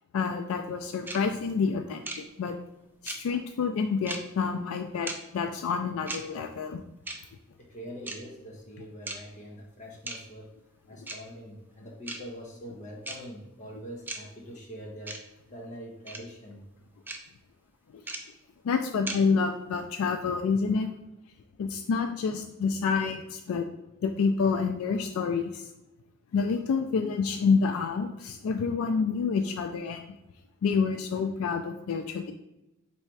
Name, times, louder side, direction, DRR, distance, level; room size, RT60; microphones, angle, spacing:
voice 1, 0.1-2.6 3.0-6.8 11.0-11.1 17.9-18.0 18.6-20.9 21.6-23.7 24.0-25.6 26.3-30.0 30.6-32.3, left 5 dB, 75° left, 7 dB, 0.3 m, -28 dB
sound 1, 1.1-1.2 2.1-2.2 3.1-3.2 4.1-4.2 5.1-5.2 6.1-6.2 7.1-7.2 8.1-8.2 9.1-9.2 10.1-10.2 11.1-11.2 12.1-12.2 13.1-13.2 14.1-14.2 15.1-15.2 16.1-16.2 17.1-17.2 18.1-18.2 19.1-19.2, right 2 dB, 10° right, 0.3 m, -35 dB
voice 2, 7.6-10.5 10.9-15.2 15.5-16.6 18.3-18.4, equal, 35° left, -1 dB, 0.9 m, -43 dB
3.2 x 2.8 x 4.5 m, 0.91 s
head